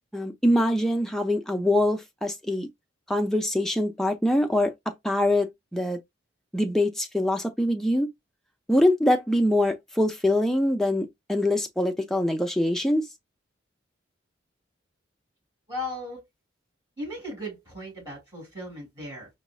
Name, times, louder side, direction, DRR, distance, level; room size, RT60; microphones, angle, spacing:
voice 1, 0.1-2.7 3.1-4.7 5.0-6.0 6.5-8.1 8.7-13.1, left 1 dB, ahead, 0.4 m, -24 dB
voice 2, 15.7-16.2 17.0-19.3, left 1 dB, 15° right, 2.5 m, -36 dB
4.9 x 2.1 x 2.3 m
head